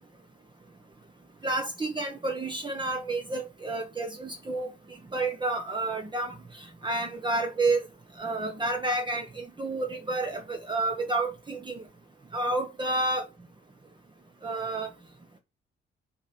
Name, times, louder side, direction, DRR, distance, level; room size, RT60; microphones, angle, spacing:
voice 1, 1.4-4.7 5.1-7.9 8.2-11.8 12.3-13.2 14.4-14.9, right 2 dB, 25° right, 1.2 m, -30 dB
6.1 x 4.5 x 5.3 m
cardioid pair, 90°, 20 cm